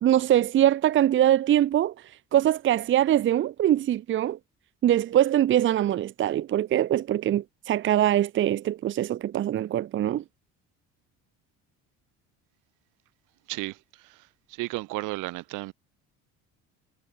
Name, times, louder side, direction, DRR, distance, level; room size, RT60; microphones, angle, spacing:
voice 1, 0.0-1.9 2.3-4.4 4.8-10.2, right 12 dB, 40° right, 0.8 m, -23 dB
voice 2, 13.5-13.8 14.0-14.2 14.5-15.7, right 22 dB, 75° right, 1.3 m, -33 dB
cardioid pair, 135°, 31 cm